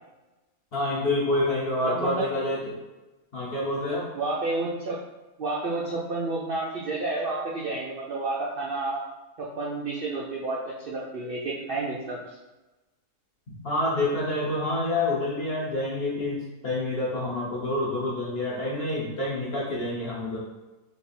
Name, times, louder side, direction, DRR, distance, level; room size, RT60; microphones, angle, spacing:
voice 1, 0.7-2.8 3.3-4.1 13.5-20.5, left 2 dB, 50° left, -5 dB, 0.7 m, -28 dB
voice 2, 1.8-2.3 4.1-5.0 5.4-9.0 9.4-12.2, right 2 dB, 70° right, -5 dB, 0.5 m, -30 dB
3.4 x 2.5 x 4.1 m, 1.1 s
omnidirectional pair, 1.7 m